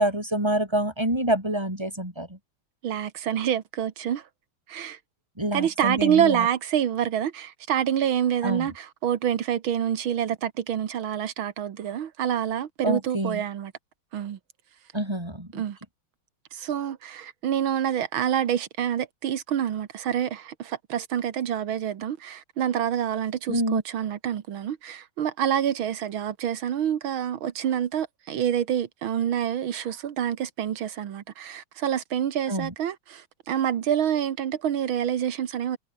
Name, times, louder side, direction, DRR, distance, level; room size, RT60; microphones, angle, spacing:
voice 1, 0.0-2.4 5.4-6.5 8.4-8.7 12.8-13.4 14.9-15.6 23.5-23.8 32.5-32.7, right 1 dB, 10° right, 6.4 m, -27 dB
voice 2, 2.8-4.3 4.7-5.0 5.5-13.7 14.1-14.4 15.5-15.8 16.5-35.8, right 9 dB, 85° right, 2.1 m, -27 dB
omnidirectional pair, 2.2 m